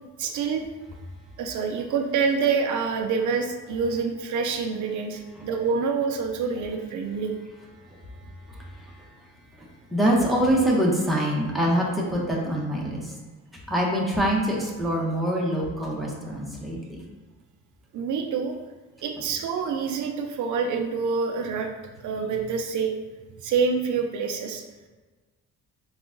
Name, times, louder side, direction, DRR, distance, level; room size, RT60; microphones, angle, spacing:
voice 1, 0.2-0.6 1.4-7.3 17.9-18.5 19.0-21.7 22.0-22.9 23.4-24.6, right 5 dB, 75° right, 3 dB, 0.5 m, -26 dB
voice 2, 7.9-9.2 9.5-13.2 13.7-17.0, equal, ahead, -4 dB, 0.9 m, -25 dB
3.8 x 2.4 x 3.7 m, 1.3 s
cardioid pair, 90°, 30 cm